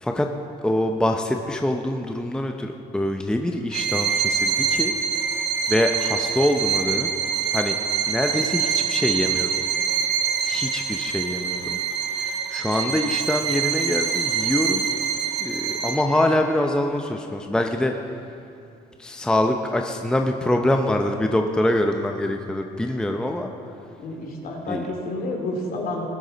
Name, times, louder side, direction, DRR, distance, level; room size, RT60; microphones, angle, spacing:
voice 1, 0.6-4.9 5.7-7.1 7.5-7.8 8.1-9.5 10.4-11.8 12.1-14.9 15.4-17.9 19.0-23.5 24.7-24.9, left 1 dB, 5° left, 4 dB, 0.7 m, -24 dB
Bowed string instrument, 3.7-16.2, right 7 dB, 80° right, 1.0 m, -25 dB
voice 2, 24.0-26.1, left 2 dB, 60° left, 1 dB, 2.6 m, -29 dB
19.0 x 9.8 x 4.0 m, 2.7 s
cardioid pair, 110°, 17 cm